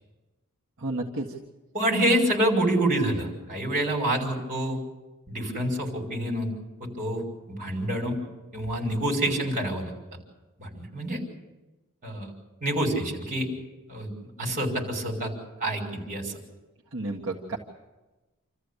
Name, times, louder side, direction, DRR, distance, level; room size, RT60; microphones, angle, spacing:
voice 1, 0.8-1.3 16.9-17.6, right 2 dB, 60° right, -1 dB, 1.7 m, -31 dB
voice 2, 1.7-4.8 5.3-6.5 6.8-7.2 7.5-8.2 8.5-9.9 10.6-11.2 12.0-12.3 12.6-13.5 13.9-14.1 14.4-15.3 15.6-16.4, right 1 dB, 35° right, 0 dB, 5.3 m, -27 dB
27.5 x 14.0 x 8.3 m, 1.1 s
head